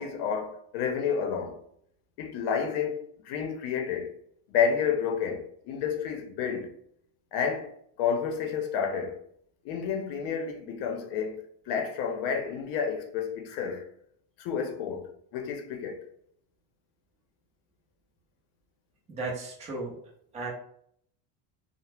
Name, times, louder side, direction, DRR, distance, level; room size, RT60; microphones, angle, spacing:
voice 1, 0.0-1.6 2.2-4.1 4.5-6.7 7.3-7.7 8.0-9.2 9.6-13.9 14.4-16.1, left 7 dB, 60° left, 0.7 m, -30 dB
voice 2, 19.1-20.0 20.3-20.5, right 3 dB, 15° right, 0.5 m, -35 dB
2.7 x 2.1 x 3.3 m
cardioid pair, 160°, 45 cm